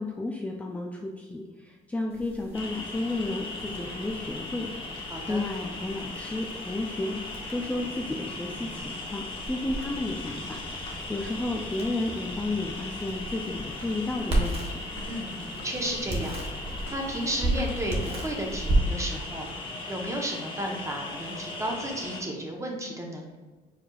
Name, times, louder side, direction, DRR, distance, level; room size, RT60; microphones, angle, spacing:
voice 1, 0.0-4.7 5.3-14.8, left 2 dB, 10° left, 0 dB, 0.4 m, -32 dB
sound 1, 2.1-21.7, right 1 dB, 35° right, 1.2 m, -35 dB
sound 2, 2.5-22.2, left 2 dB, 30° left, 1.0 m, -38 dB
voice 2, 5.1-5.4 15.0-16.6 16.9-19.5 19.9-23.4, right 1 dB, 15° right, 1 dB, 1.0 m, -33 dB
sound 3, 13.8-15.9 16.2-17.9 18.2-18.4 18.7-18.8 19.0-19.3, left 3 dB, 85° left, 1.1 m, -48 dB
4.8 x 4.4 x 2.4 m, 1.3 s
cardioid pair, 110°, 17 cm